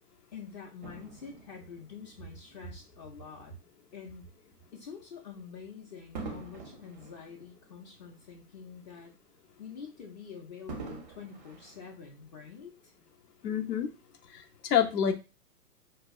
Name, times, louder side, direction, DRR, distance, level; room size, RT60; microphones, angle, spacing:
voice 1, 0.3-3.6 3.9-4.3 4.7-9.1 9.6-12.9, left 5 dB, 30° left, 1 dB, 0.5 m, -46 dB
Fireworks, 0.8-3.4 4.1-4.3 6.1-8.7 9.0-9.1 10.7-12.6 13.3-13.4, right 4 dB, 30° right, 0.4 m, -46 dB
voice 2, 13.4-13.9 14.3-15.1, left 8 dB, 80° left, 6 dB, 0.7 m, -27 dB
4.5 x 2.0 x 2.3 m, 0.30 s
hypercardioid pair, 120°, 47 cm